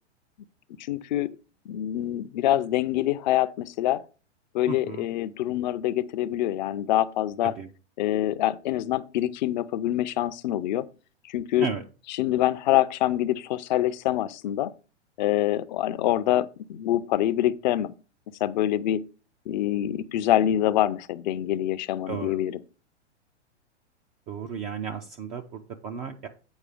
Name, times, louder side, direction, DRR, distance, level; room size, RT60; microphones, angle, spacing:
voice 1, 0.8-1.3 1.7-4.0 4.5-7.5 8.0-10.8 11.3-11.7 12.1-14.7 15.2-17.9 18.4-19.0 19.5-22.6, left 13 dB, 40° left, 0.6 m, -25 dB
voice 2, 4.7-5.1 7.4-7.7 11.6-11.8 22.1-22.4 24.3-26.3, right 6 dB, 20° right, 0.4 m, -34 dB
8.2 x 4.8 x 4.9 m
figure-of-eight pair, 105°, 35 cm